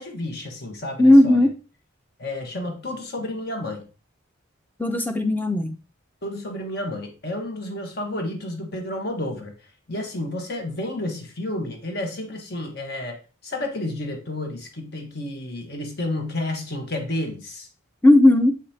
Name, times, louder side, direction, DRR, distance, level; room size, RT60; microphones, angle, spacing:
voice 1, 0.0-1.5 2.2-3.8 6.2-9.5 9.9-17.7, left 1 dB, 50° left, 3 dB, 1.4 m, -31 dB
voice 2, 1.0-1.5 4.8-5.7 18.0-18.5, left 1 dB, 10° left, 7 dB, 0.6 m, -15 dB
7.6 x 5.3 x 2.8 m, 0.34 s
head